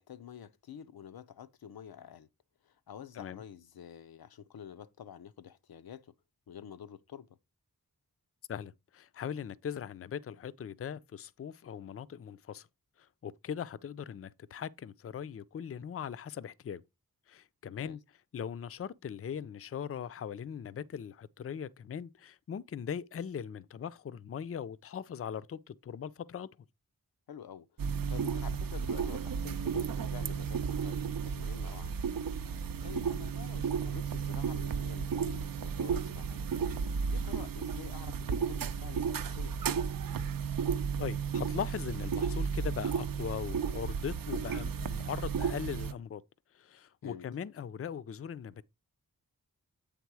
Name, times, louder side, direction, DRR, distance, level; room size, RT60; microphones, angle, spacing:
voice 1, 0.0-2.3 2.6-6.1 6.5-7.3 17.8-18.0 27.3-32.0 32.4-36.4 36.7-39.6 47.0-47.3, left 8 dB, 85° left, 0.6 m, -48 dB
voice 2, 8.5-12.7 13.0-16.8 17.3-18.0 18.3-26.5 41.0-46.2 46.5-48.6, left 8 dB, 40° left, 0.4 m, -40 dB
sound 1, 27.8-45.9, right 6 dB, 70° right, 0.6 m, -33 dB
8.3 x 3.6 x 4.7 m
wide cardioid pair, 60°, 36 cm